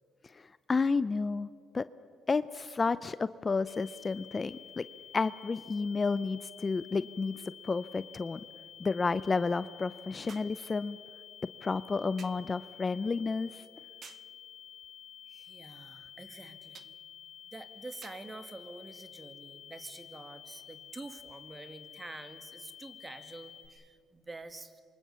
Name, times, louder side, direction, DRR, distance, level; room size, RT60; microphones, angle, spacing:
voice 1, 0.2-1.5 1.7-1.8 2.3-4.9 5.1-8.4 8.8-11.0 11.6-13.6, left 4 dB, 30° left, 15 dB, 0.5 m, -31 dB
sound 1, 3.7-23.7, left 9 dB, 50° left, 4.6 m, -51 dB
sound 2, 6.5-6.6 10.3-10.6 12.2-12.5 14.0-14.4 16.7-17.0 18.0-18.3 19.4-19.5, right 7 dB, 50° right, 0.8 m, -52 dB
voice 2, 15.3-17.0 17.5-24.8, right 2 dB, 20° right, 10 dB, 2.0 m, -47 dB
27.0 x 24.5 x 7.0 m, 2.2 s
cardioid pair, 85°, 0 cm